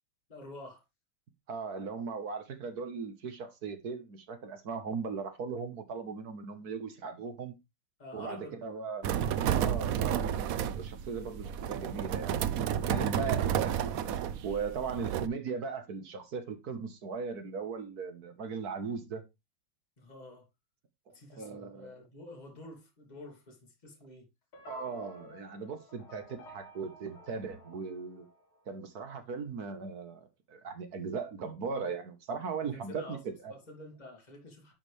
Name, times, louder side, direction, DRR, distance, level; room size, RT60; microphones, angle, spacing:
voice 1, 0.3-0.8 8.0-8.6 20.0-20.5 21.1-24.3 32.7-33.2 33.5-34.7, left 1 dB, 20° left, 2.7 m, -48 dB
voice 2, 1.5-7.6 8.1-9.0 9.5-10.3 10.8-14.0 14.4-19.3 21.1-21.9 24.7-28.3 28.7-33.5, right 5 dB, 50° right, 1.7 m, -38 dB
sound 1, 9.0-15.3, right 9 dB, 85° right, 0.7 m, -31 dB
sound 2, 24.5-28.8, left 1 dB, 85° left, 3.0 m, -54 dB
11.0 x 5.0 x 3.4 m
omnidirectional pair, 2.3 m